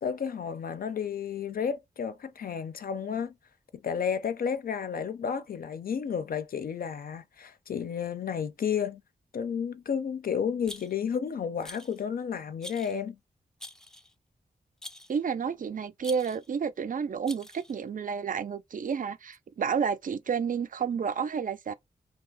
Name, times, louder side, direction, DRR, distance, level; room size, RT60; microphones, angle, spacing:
voice 1, 0.0-3.3 3.8-9.0 9.3-13.2, left 7 dB, 65° left, 0.4 m, -32 dB
Rattle, 10.6-11.2 11.6-12.0 12.6-13.0 13.6-14.1 14.8-15.2 16.0-16.5 17.3-17.8, left 1 dB, 5° left, 0.4 m, -45 dB
voice 2, 15.1-21.7, right 6 dB, 55° right, 0.4 m, -30 dB
2.8 x 2.4 x 3.8 m
wide cardioid pair, 110°, 16 cm